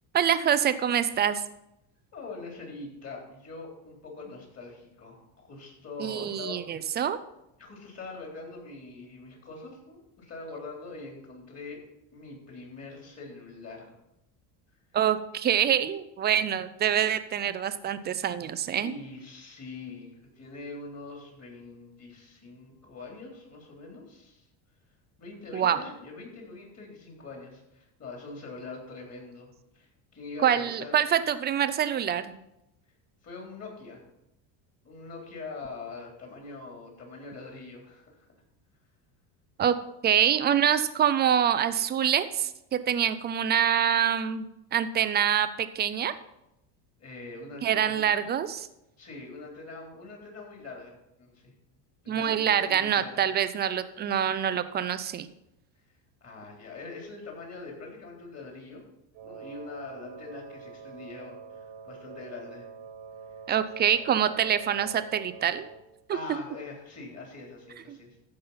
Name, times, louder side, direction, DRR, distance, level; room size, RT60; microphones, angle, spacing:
voice 1, 0.1-1.4 6.0-7.2 14.9-18.9 25.5-25.8 30.4-32.3 39.6-39.7 40.0-46.1 47.6-48.7 52.1-55.3 63.5-65.6 66.1-66.2, right 9 dB, 25° right, 12 dB, 0.3 m, -25 dB
voice 2, 2.1-6.6 6.8-7.0 7.6-11.8 12.1-13.9 18.8-24.5 25.2-31.0 33.2-34.0 34.8-38.1 47.0-48.1 49.0-51.5 52.0-53.2 56.2-58.8 59.2-62.7 66.1-68.3, left 3 dB, 30° left, 0 dB, 3.7 m, -43 dB
Wind instrument woodwind instrument, 59.1-65.9, right 6 dB, 75° right, 1.6 m, -45 dB
14.5 x 5.5 x 5.6 m, 0.87 s
cardioid pair, 135°, 49 cm